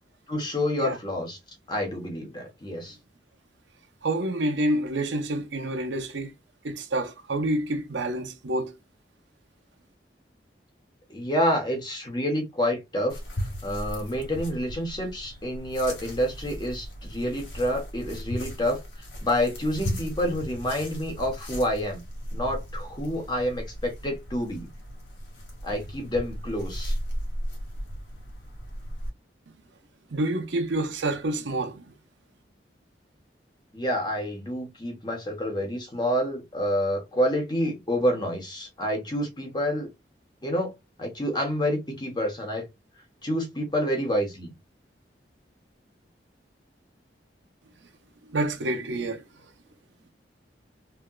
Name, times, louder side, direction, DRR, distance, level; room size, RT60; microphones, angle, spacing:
voice 1, 0.3-1.4 1.7-3.0 11.1-13.2 13.6-18.8 19.2-22.0 22.3-24.7 25.6-27.0 33.7-39.9 40.4-42.6 43.2-44.5, equal, 25° left, 1.2 m, -28 dB
voice 2, 4.0-6.3 6.6-8.7 30.1-31.8 48.3-49.2, right 1 dB, 85° right, 0.8 m, -28 dB
sound 1, 13.1-29.1, equal, 90° left, 1.7 m, -36 dB
3.4 x 2.8 x 2.4 m
head